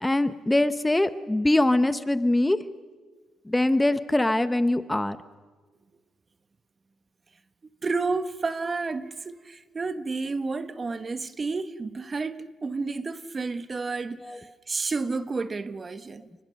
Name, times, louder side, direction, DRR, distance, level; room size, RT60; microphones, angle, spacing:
voice 1, 0.0-2.6 3.5-5.2 14.2-14.4, left 1 dB, 10° left, 0.9 m, -23 dB
voice 2, 7.8-16.3, right 3 dB, 30° right, 1.2 m, -31 dB
29.5 x 21.0 x 6.5 m
cardioid pair, 90°, 0 cm